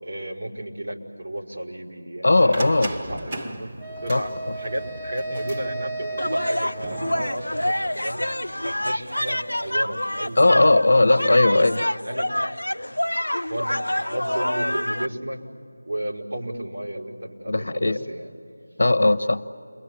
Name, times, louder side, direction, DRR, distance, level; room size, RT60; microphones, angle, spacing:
voice 1, 0.0-3.7 4.0-8.2 8.6-10.4 11.1-11.7 12.0-12.3 13.5-15.4 15.9-18.3, right 1 dB, 70° right, -4 dB, 5.5 m, -33 dB
voice 2, 2.2-2.9 4.1-4.2 10.4-11.8 17.5-18.0 18.8-19.4, left 2 dB, 60° left, 13 dB, 1.2 m, -18 dB
sound 1, 2.5-10.6, right 1 dB, 25° right, 1.9 m, -39 dB
Wind instrument woodwind instrument, 3.8-7.9, right 2 dB, 10° right, 1.2 m, -35 dB
sound 2, 6.2-15.1, left 1 dB, 85° left, 0.7 m, -27 dB
29.5 x 23.0 x 8.7 m, 2.6 s
figure-of-eight pair, 165°, 0 cm